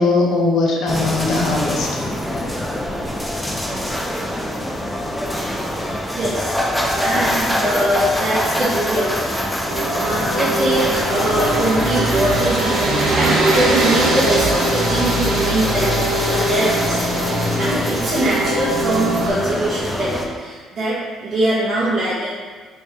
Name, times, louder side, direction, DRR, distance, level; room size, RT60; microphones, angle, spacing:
voice 1, 0.0-2.0 4.3-4.4 10.1-10.3, left 3 dB, 55° left, -1 dB, 0.6 m, -20 dB
sound 1, 0.9-20.2, equal, 5° left, 0.3 m, -24 dB
voice 2, 6.1-6.5 7.0-9.3 10.0-12.9 13.2-22.3, right 1 dB, 30° right, -9 dB, 0.6 m, -22 dB
sound 2, 9.7-19.3, right 2 dB, 70° right, 0.6 m, -21 dB
3.4 x 3.1 x 2.8 m, 1.5 s
cardioid pair, 170°, 0 cm